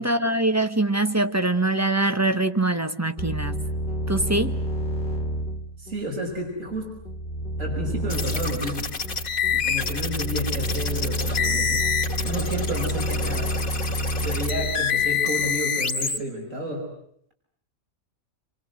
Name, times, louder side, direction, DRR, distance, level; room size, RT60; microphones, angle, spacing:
voice 1, 0.0-3.6 4.1-4.6, right 2 dB, 10° right, 8 dB, 1.2 m, -23 dB
sound 1, 3.2-15.7, equal, 40° left, 2.3 m, -29 dB
voice 2, 5.8-6.9 7.6-8.9 9.5-11.9 12.2-13.5 14.2-16.9, equal, 60° right, 1 dB, 6.6 m, -31 dB
sound 2, 8.1-16.2, left 6 dB, 70° left, 3.0 m, -27 dB
28.5 x 26.0 x 7.8 m, 0.68 s
omnidirectional pair, 1.5 m